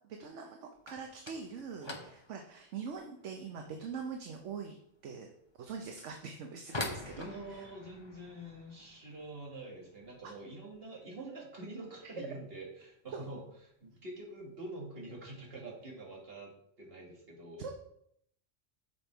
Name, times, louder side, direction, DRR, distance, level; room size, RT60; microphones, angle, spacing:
voice 1, 0.2-4.8 5.0-5.3 5.6-7.6 10.2-10.3 13.1-13.2 17.6-17.7, right 5 dB, 70° right, 3 dB, 1.1 m, -43 dB
sound 1, 0.7-11.5 11.8-12.4 12.6-13.0 13.3-13.4 14.1-14.2 15.1-15.3 15.6-16.1, left 2 dB, 25° left, 0.8 m, -47 dB
voice 2, 7.2-16.5 16.8-17.7, right 2 dB, 50° right, -2 dB, 2.1 m, -46 dB
6.9 x 5.2 x 4.5 m, 0.71 s
omnidirectional pair, 1.3 m